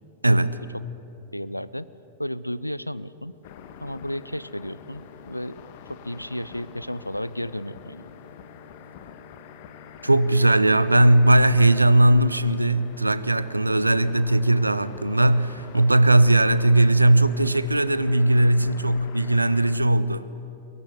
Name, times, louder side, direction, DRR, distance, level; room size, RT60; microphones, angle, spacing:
voice 1, 0.2-0.6 10.0-20.3, right 1 dB, 85° right, 0.8 m, -19 dB
voice 2, 1.3-1.9 2.2-3.3 3.8-5.6 5.9-8.1, equal, 90° left, 0.6 m, -33 dB
sound 1, 3.4-19.8, left 7 dB, 50° left, 1.6 m, -45 dB
23.0 x 21.5 x 9.8 m
figure-of-eight pair, 90°, 0 cm